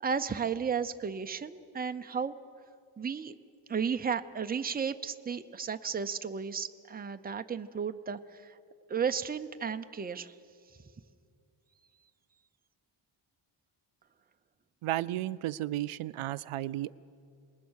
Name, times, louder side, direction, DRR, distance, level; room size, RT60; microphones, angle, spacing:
voice 1, 0.0-2.3 3.0-3.3 3.7-8.5 8.9-10.3, right 6 dB, 20° right, 8 dB, 0.6 m, -33 dB
voice 2, 14.8-16.9, right 14 dB, 80° right, 16 dB, 0.6 m, -33 dB
27.0 x 20.5 x 6.4 m, 2.3 s
wide cardioid pair, 130°, 49 cm